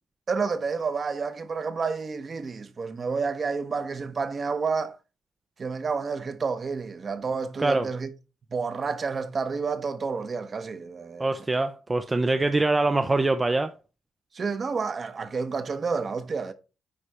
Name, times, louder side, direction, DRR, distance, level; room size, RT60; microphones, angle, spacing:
voice 1, 0.3-5.0 5.6-8.1 8.5-11.3 12.4-12.5 14.3-16.5, right 5 dB, 40° right, 1.0 m, -30 dB
voice 2, 7.6-7.9 11.2-13.7, right 2 dB, 20° right, 0.5 m, -24 dB
9.8 x 3.3 x 4.2 m
cardioid pair, 90°, 0 cm